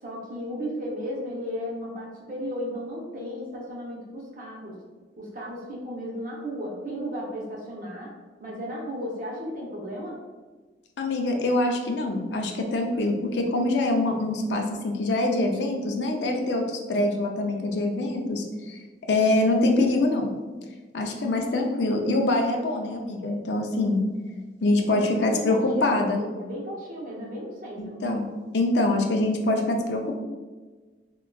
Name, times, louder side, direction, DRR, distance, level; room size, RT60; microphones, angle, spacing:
voice 1, 0.0-4.7 5.2-8.1 8.4-10.2 24.9-28.0, equal, 45° right, -3 dB, 0.7 m, -35 dB
voice 2, 11.0-18.8 19.1-20.3 20.9-24.0 24.6-26.2 27.8-28.3 28.5-30.2, left 2 dB, 70° left, 2 dB, 0.4 m, -24 dB
3.6 x 2.2 x 2.2 m, 1.3 s
head